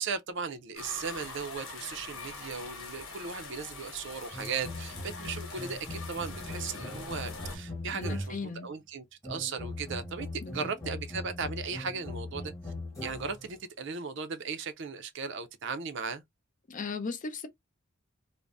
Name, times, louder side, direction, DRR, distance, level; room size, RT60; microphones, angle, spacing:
voice 1, 0.0-12.5 13.0-16.2, right 5 dB, 60° right, 0.5 m, -37 dB
sound 1, 0.8-7.6, left 4 dB, 85° left, 1.1 m, -43 dB
sound 2, 4.3-8.6 9.2-13.5, left 1 dB, 15° left, 1.1 m, -40 dB
voice 2, 7.9-8.7 10.4-10.7 16.7-17.5, left 4 dB, 40° left, 0.5 m, -37 dB
2.5 x 2.1 x 3.3 m
head